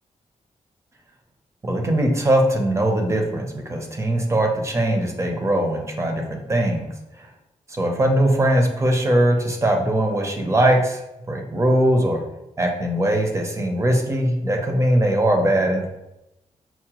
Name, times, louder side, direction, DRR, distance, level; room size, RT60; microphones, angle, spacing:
voice 1, 1.6-6.9 7.7-11.0 11.3-12.2 12.6-15.9, right 1 dB, 25° right, 2 dB, 0.6 m, -20 dB
5.7 x 2.1 x 2.9 m, 0.89 s
wide cardioid pair, 145°, 13 cm